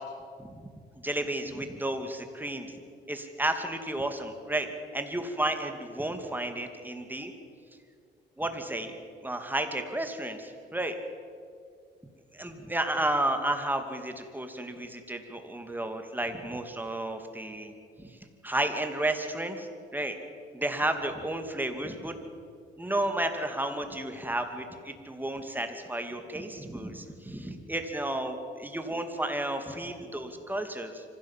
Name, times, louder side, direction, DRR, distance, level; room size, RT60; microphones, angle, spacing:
voice 1, 1.0-2.7 3.1-4.7 4.9-7.3 8.4-8.9 9.2-11.0 12.3-17.7 18.0-18.2 18.4-20.2 20.5-22.2 22.8-31.0, right 1 dB, 10° right, 6 dB, 2.5 m, -32 dB
25.0 x 16.0 x 7.5 m, 2.2 s
cardioid pair, 90°, 20 cm